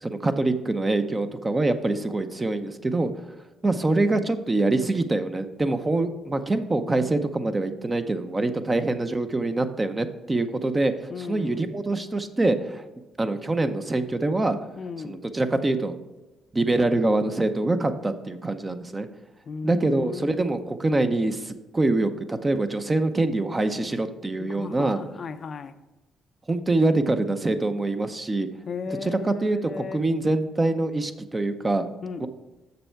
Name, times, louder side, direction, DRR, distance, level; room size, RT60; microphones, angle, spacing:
voice 1, 0.0-3.2 3.6-12.9 13.2-14.6 15.0-15.9 16.5-19.1 19.6-25.0 26.5-28.5 29.0-31.9 32.2-32.3, right 2 dB, 20° right, 0.6 m, -25 dB
voice 2, 11.1-11.7 14.8-15.2 19.5-20.4 24.4-25.8 28.7-30.0 32.0-32.3, left 5 dB, 50° left, 0.5 m, -35 dB
6.7 x 6.6 x 4.6 m
cardioid pair, 90°, 0 cm